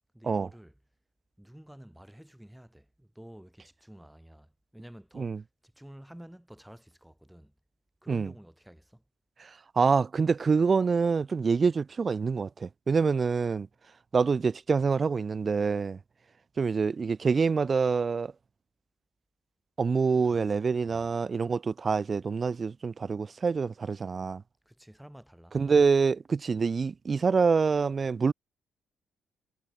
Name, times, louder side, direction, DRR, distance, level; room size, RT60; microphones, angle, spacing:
voice 1, 0.1-0.8 1.4-7.5 8.0-9.0 20.1-21.1 24.6-25.8, equal, 5° right, 6.1 m, -51 dB
voice 2, 9.4-13.7 14.1-16.0 16.6-18.3 19.8-24.4 25.5-28.3, right 5 dB, 25° right, 0.7 m, -26 dB
cardioid pair, 150°, 0 cm